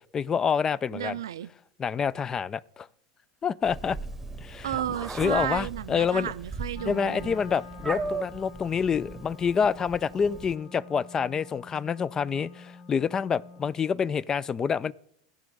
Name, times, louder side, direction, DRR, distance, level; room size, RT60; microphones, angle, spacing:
voice 1, 0.1-1.2 1.8-2.9 3.4-4.0 4.4-4.7 5.2-6.3 6.8-14.9, left 6 dB, 25° left, 0.3 m, -27 dB
voice 2, 0.9-1.5 4.6-7.4, right 11 dB, 85° right, 0.4 m, -33 dB
Meow, 3.6-10.5, right 3 dB, 10° right, 0.9 m, -38 dB
Wind instrument woodwind instrument, 6.7-13.9, left 4 dB, 70° left, 2.1 m, -46 dB
15.5 x 5.2 x 4.7 m
hypercardioid pair, 100°, 2 cm